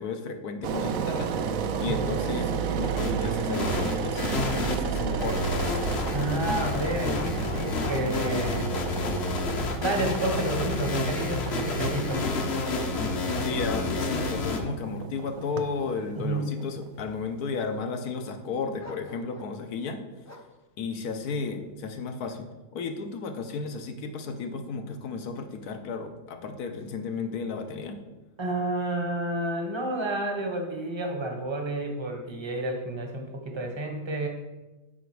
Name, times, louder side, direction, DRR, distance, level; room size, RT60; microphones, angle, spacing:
voice 1, 0.0-5.6 13.4-20.3 20.8-28.0, left 4 dB, 70° left, 6 dB, 1.2 m, -34 dB
Engine, 0.6-17.5, right 7 dB, 65° right, 0.9 m, -33 dB
voice 2, 1.8-2.2 6.1-8.7 9.8-12.3 16.2-16.5 28.4-34.3, right 1 dB, 20° right, 3 dB, 0.8 m, -30 dB
sound 1, 3.0-3.1 3.5-14.6, left 3 dB, 50° left, 0.9 m, -29 dB
Dog, 7.1-8.5 9.0-9.3 9.9-11.4 11.8-12.7 13.3-13.4 13.9-16.2 16.9-17.5 18.8-19.6 20.2-20.6, left 2 dB, 25° left, 0.3 m, -49 dB
8.0 x 5.1 x 4.7 m, 1.1 s
omnidirectional pair, 1.8 m